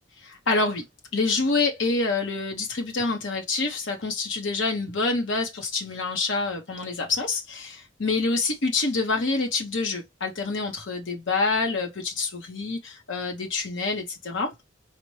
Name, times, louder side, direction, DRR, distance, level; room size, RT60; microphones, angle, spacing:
voice 1, 0.2-0.8 1.1-14.6, left 3 dB, 70° left, 0.9 m, -27 dB
4.1 x 2.1 x 3.1 m
head